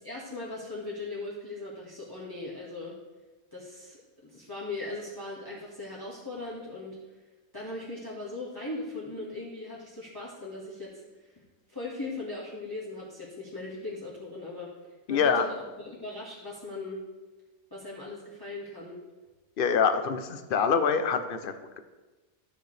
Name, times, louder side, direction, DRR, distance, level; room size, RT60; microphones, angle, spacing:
voice 1, 0.0-2.9 3.5-7.2 7.5-11.4 11.7-17.0 17.7-19.0, left 2 dB, 15° left, -6 dB, 1.8 m, -39 dB
voice 2, 15.1-15.4 19.6-21.8, left 6 dB, 50° left, 9 dB, 0.7 m, -25 dB
13.5 x 6.5 x 3.3 m, 1.2 s
omnidirectional pair, 1.5 m